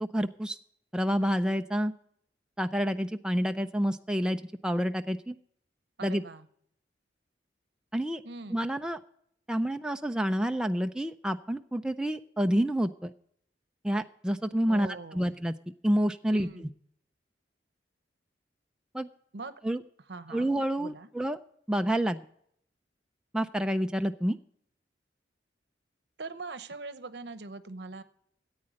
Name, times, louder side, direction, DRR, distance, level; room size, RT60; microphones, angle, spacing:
voice 1, 0.0-0.6 0.9-1.9 2.6-5.4 6.0-6.2 7.9-8.2 8.5-9.0 9.5-13.1 13.8-15.5 15.8-16.7 18.9-19.1 19.6-19.8 20.3-21.4 21.7-22.2 23.3-24.4, equal, 5° right, 6 dB, 0.3 m, -28 dB
voice 2, 6.0-6.5 8.2-8.7 14.7-15.4 16.3-16.8 19.3-19.5 20.1-20.5 20.8-21.1 26.2-28.0, right 3 dB, 65° right, 13 dB, 0.8 m, -42 dB
14.0 x 8.7 x 5.0 m, 0.70 s
head